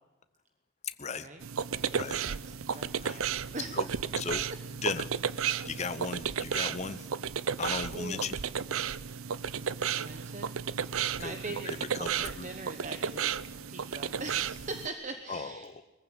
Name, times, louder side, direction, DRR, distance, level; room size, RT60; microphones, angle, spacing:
voice 1, 0.8-1.3 2.0-2.2 2.7-3.2 3.7-3.9 4.1-4.4 4.8-5.1 5.6-7.1 7.6-8.4 11.2-12.1 12.4-12.5 15.3-15.8, left 4 dB, 30° left, 11 dB, 0.7 m, -36 dB
sound 1, 1.4-14.9, right 7 dB, 75° right, 0.6 m, -33 dB
voice 2, 1.9-2.3 2.7-3.3 3.5-4.0 7.9-8.3 9.5-10.6 10.8-15.7, right 3 dB, 35° right, 7 dB, 1.1 m, -42 dB
21.5 x 15.0 x 8.8 m, 1.2 s
head